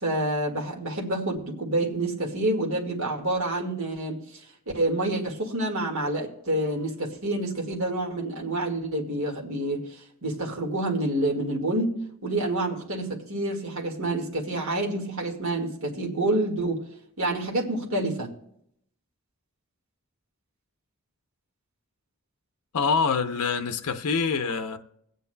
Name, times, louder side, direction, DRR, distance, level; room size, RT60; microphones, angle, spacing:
voice 1, 0.0-4.2 4.7-16.8 17.2-18.3, right 1 dB, 65° right, 1.8 m, -28 dB
voice 2, 22.7-24.8, left 5 dB, 90° left, 0.6 m, -25 dB
23.0 x 8.2 x 2.2 m
head